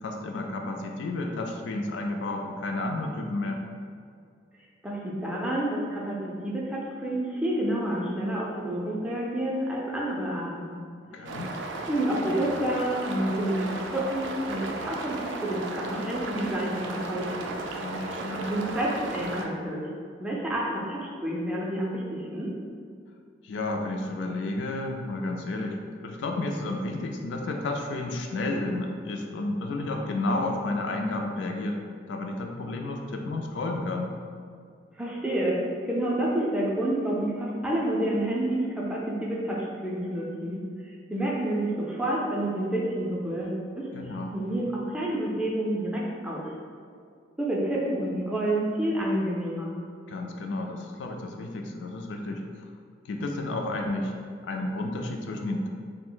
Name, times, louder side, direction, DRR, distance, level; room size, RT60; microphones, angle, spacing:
voice 1, 0.0-3.6 11.0-11.5 17.8-18.5 23.4-25.8 26.0-31.8 32.1-34.1 43.9-44.3 50.1-52.4 53.0-54.1 54.4-55.7, left 2 dB, 75° left, 2 dB, 0.3 m, -31 dB
voice 2, 4.8-10.8 11.9-17.5 18.5-19.9 20.2-22.5 35.0-43.9 44.3-46.5 47.4-49.7, right 1 dB, 5° right, -4 dB, 0.4 m, -29 dB
sound 1, 11.2-19.4, right 2 dB, 80° right, 0.3 m, -35 dB
2.4 x 2.0 x 3.7 m, 2.2 s
head